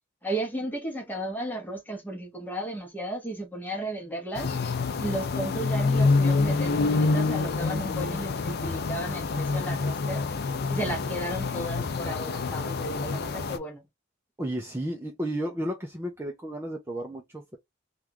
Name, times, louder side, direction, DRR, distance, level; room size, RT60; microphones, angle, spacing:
voice 1, 0.2-4.5 4.9-10.3 10.7-13.8, right 1 dB, 10° left, 1.1 m, -34 dB
sound 1, 4.4-13.6, left 3 dB, 50° left, 0.5 m, -27 dB
voice 2, 14.4-17.6, right 1 dB, 10° right, 0.6 m, -33 dB
3.5 x 2.4 x 2.8 m
head